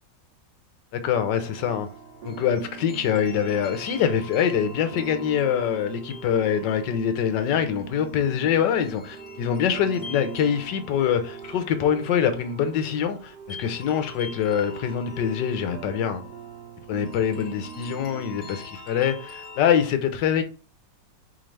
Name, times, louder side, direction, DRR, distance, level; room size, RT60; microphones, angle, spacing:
voice 1, 0.9-1.9 2.2-16.2 16.9-20.4, left 8 dB, 80° left, 1.3 m, -24 dB
sound 1, 1.4-19.9, left 4 dB, 35° left, 1.3 m, -45 dB
sound 2, 1.6-18.6, right 8 dB, 75° right, 1.2 m, -43 dB
4.2 x 3.8 x 3.2 m
omnidirectional pair, 1.9 m